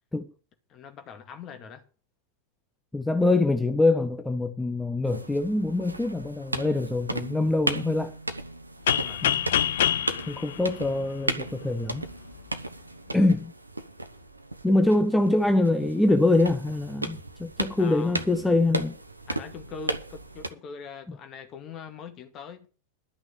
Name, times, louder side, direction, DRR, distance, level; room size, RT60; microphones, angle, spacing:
voice 1, 0.7-1.8 8.9-9.5 13.0-13.3 17.8-18.5 19.3-22.7, left 6 dB, 30° left, 2.2 m, -43 dB
voice 2, 2.9-8.1 9.2-9.4 10.3-12.1 13.1-13.5 14.6-18.9, left 2 dB, 5° left, 1.0 m, -24 dB
sound 1, 5.0-20.5, right 2 dB, 85° right, 1.0 m, -35 dB
sound 2, 8.9-11.6, left 10 dB, 60° left, 0.6 m, -26 dB
12.0 x 6.1 x 8.3 m
figure-of-eight pair, 90°, 0 cm